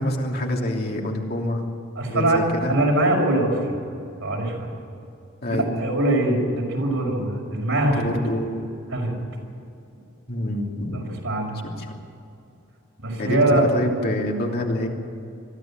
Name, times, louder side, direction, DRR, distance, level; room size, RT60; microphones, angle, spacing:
voice 1, 0.0-1.6 2.1-2.7 5.4-5.7 8.0-8.6 10.3-11.0 11.8-11.9 13.2-14.9, left 1 dB, 50° left, 0 dB, 3.0 m, -26 dB
voice 2, 2.0-2.4 2.7-3.9 4.2-4.7 5.5-8.1 8.9-9.1 10.9-11.6 13.0-13.7, right 1 dB, 85° right, -1 dB, 5.8 m, -22 dB
22.5 x 13.0 x 9.0 m, 2.6 s
head